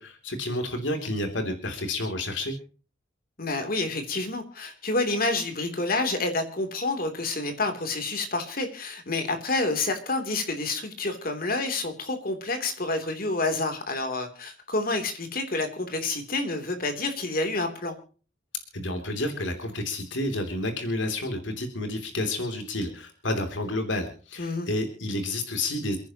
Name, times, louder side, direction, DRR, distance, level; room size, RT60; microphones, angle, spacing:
voice 1, 0.0-2.5 18.7-26.0, left 1 dB, 85° left, 5 dB, 3.0 m, -30 dB
voice 2, 3.4-18.0 24.4-24.7, left 2 dB, 50° left, 6 dB, 3.1 m, -28 dB
29.5 x 10.5 x 3.0 m, 0.39 s
head